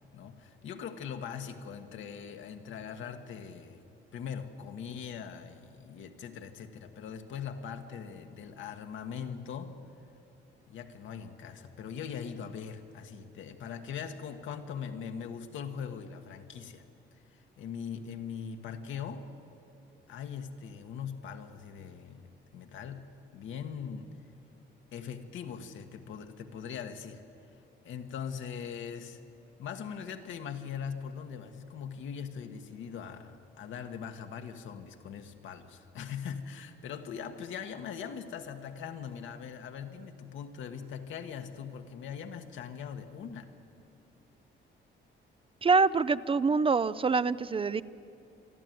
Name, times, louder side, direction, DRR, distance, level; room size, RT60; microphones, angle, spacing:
voice 1, 0.1-3.8 4.1-9.8 10.7-16.8 17.3-19.3 20.1-23.0 23.3-24.1 24.9-27.2 27.8-29.2 29.6-43.5, left 7 dB, 80° left, 6 dB, 1.5 m, -41 dB
voice 2, 45.6-47.8, right 4 dB, 30° right, 16 dB, 0.5 m, -25 dB
26.5 x 11.5 x 9.4 m, 2.6 s
cardioid pair, 90°, 20 cm